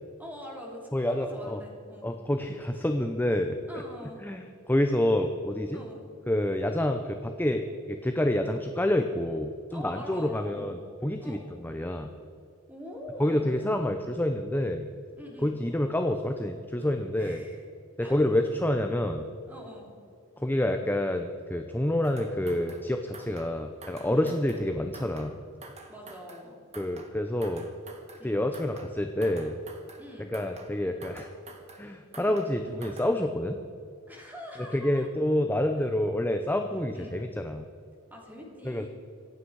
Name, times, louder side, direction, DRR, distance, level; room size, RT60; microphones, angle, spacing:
voice 1, 0.2-2.1 3.7-4.2 5.0-5.1 5.7-6.0 9.7-10.7 11.2-11.5 12.7-13.7 15.2-15.6 17.1-17.6 18.0-18.4 19.5-19.9 24.1-24.4 25.9-26.6 28.2-28.4 30.0-30.4 32.2-32.7 34.1-35.1 35.8-35.9 36.7-37.2 38.1-38.9, left 1 dB, 10° right, -1 dB, 3.1 m, -44 dB
voice 2, 0.9-1.6 2.0-3.6 4.2-5.8 6.3-10.8 11.0-12.1 13.2-14.9 15.4-17.4 18.0-19.3 20.4-25.4 26.8-27.7 28.2-29.6 30.3-31.3 31.8-33.6 34.7-37.7 38.6-38.9, left 1 dB, 10° left, 5 dB, 0.6 m, -28 dB
sound 1, 22.0-22.9 23.1-23.6 23.8-24.7 24.9-25.4 25.6-26.5 26.7-27.2 27.4-28.3 28.5-29.0 29.2-30.1 30.3-30.8 31.0-31.9 32.1-32.6 32.8-33.2, right 3 dB, 30° right, 1.5 m, -49 dB
25.0 x 9.0 x 4.8 m, 2.5 s
head